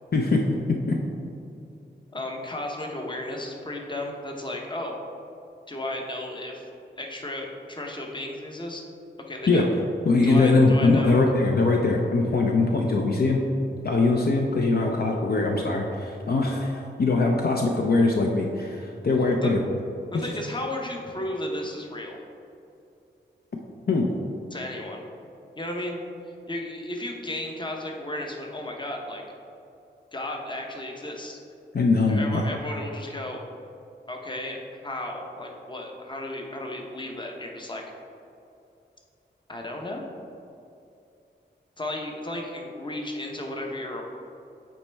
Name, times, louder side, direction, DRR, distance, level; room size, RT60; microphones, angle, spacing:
voice 1, 0.1-1.0 9.5-9.7 10.1-13.4 13.8-19.6 20.1-20.3 23.9-24.1 31.7-32.4, left 3 dB, 55° left, 1 dB, 0.6 m, -22 dB
voice 2, 2.1-5.0 5.7-6.7 7.0-8.9 9.3-9.7 10.2-11.2 19.1-19.6 20.1-22.2 24.5-25.0 25.6-26.0 26.5-29.2 30.1-31.4 32.1-33.4 34.1-37.8 39.5-40.0 41.8-44.0, left 1 dB, 25° left, 1 dB, 0.8 m, -34 dB
8.5 x 4.2 x 3.4 m, 2.7 s
wide cardioid pair, 85°, 19 cm